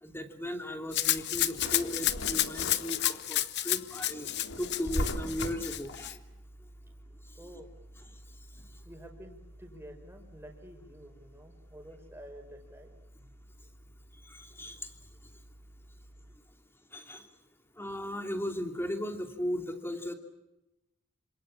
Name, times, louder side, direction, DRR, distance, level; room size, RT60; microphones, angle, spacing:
voice 1, 0.0-4.3 4.6-6.2 14.2-14.9 16.9-17.3 17.8-20.1, equal, 10° left, 6 dB, 2.8 m, -36 dB
Drawer open or close, 0.9-3.5 3.9-6.0, left 1 dB, 70° left, 3.0 m, -38 dB
Rattle (instrument), 0.9-6.1, left 13 dB, 55° left, 1.1 m, -31 dB
sound 1, 5.4-16.4, right 1 dB, 85° right, 6.3 m, -54 dB
voice 2, 7.4-7.7 8.8-12.9, equal, 10° right, 4 dB, 5.1 m, -50 dB
27.5 x 26.5 x 7.3 m, 0.94 s
head